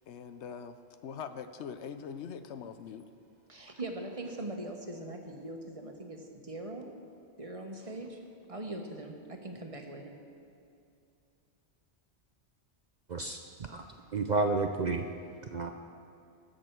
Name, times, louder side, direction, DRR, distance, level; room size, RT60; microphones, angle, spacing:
voice 1, 0.1-3.1, left 7 dB, 75° left, 10 dB, 0.9 m, -43 dB
voice 2, 3.5-6.9 7.4-8.2 8.5-10.1, right 1 dB, 30° right, 3 dB, 1.1 m, -41 dB
voice 3, 13.1-13.9 14.1-15.1 15.5-15.7, right 3 dB, 50° right, 5 dB, 0.6 m, -31 dB
20.0 x 7.7 x 4.5 m, 2.6 s
omnidirectional pair, 1.2 m